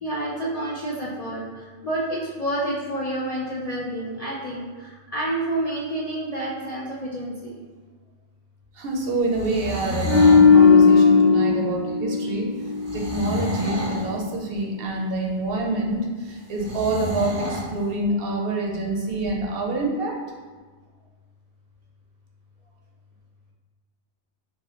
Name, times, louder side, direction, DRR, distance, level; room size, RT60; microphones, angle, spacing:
voice 1, 0.0-7.6, right 1 dB, 50° left, -6 dB, 0.4 m, -29 dB
voice 2, 8.7-12.5 12.9-20.2, right 2 dB, 65° right, -1 dB, 0.8 m, -27 dB
sound 1, 9.2-10.5 12.8-14.1 16.6-17.7, equal, 25° right, 0.4 m, -29 dB
sound 2, 10.0-13.3 13.6-13.9, left 5 dB, 75° left, 1.3 m, -16 dB
3.4 x 2.5 x 3.6 m, 1.5 s
omnidirectional pair, 1.1 m